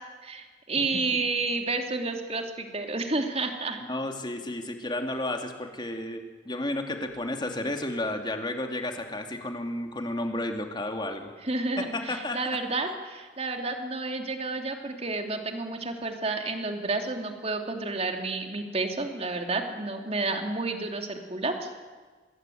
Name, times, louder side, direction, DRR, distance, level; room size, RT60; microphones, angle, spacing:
voice 1, 0.2-3.8 11.4-21.7, right 3 dB, 35° right, 4 dB, 2.8 m, -30 dB
voice 2, 3.9-11.3 11.8-12.6, left 1 dB, 25° left, 4 dB, 2.8 m, -32 dB
26.0 x 21.0 x 9.3 m, 1.4 s
head